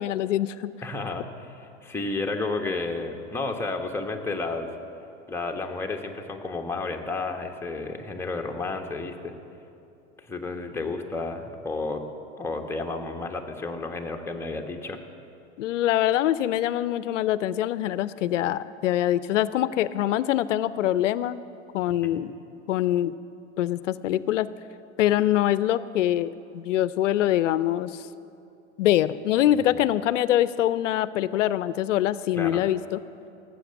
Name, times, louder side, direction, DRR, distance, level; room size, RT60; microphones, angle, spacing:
voice 1, 0.0-0.7 15.6-21.4 21.7-22.3 22.7-23.1 23.6-24.5 25.0-28.1 28.8-33.0, left 12 dB, 80° left, 17 dB, 0.6 m, -24 dB
voice 2, 0.8-4.7 5.3-9.3 10.2-12.1 12.4-15.0 22.0-22.3 29.5-29.6 32.4-32.6, left 3 dB, 5° left, 1 dB, 1.3 m, -32 dB
18.0 x 7.8 x 7.1 m, 2.7 s
hypercardioid pair, 95°, 37 cm